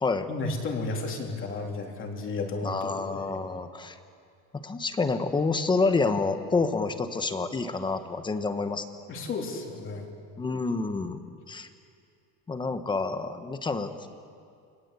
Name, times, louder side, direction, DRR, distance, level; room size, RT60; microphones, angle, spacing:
voice 1, 0.3-3.3 9.1-10.1, left 3 dB, 25° left, 1 dB, 3.5 m, -33 dB
voice 2, 2.6-4.0 4.6-8.9 10.4-11.2 11.5-11.7 12.5-14.1, left 3 dB, 10° left, 9 dB, 1.1 m, -28 dB
29.5 x 24.0 x 8.3 m, 2.4 s
cardioid pair, 170°, 44 cm